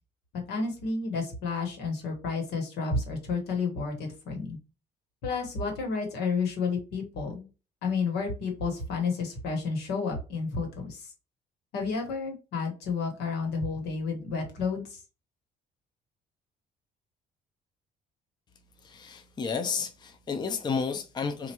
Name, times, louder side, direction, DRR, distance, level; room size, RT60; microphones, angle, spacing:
voice 1, 0.5-4.6 5.2-7.5 7.8-11.1 11.7-15.0, left 4 dB, 80° left, 1.4 m, -31 dB
voice 2, 18.8-21.5, left 5 dB, 25° left, 0.5 m, -32 dB
4.3 x 2.5 x 2.9 m
cardioid pair, 110°, 17 cm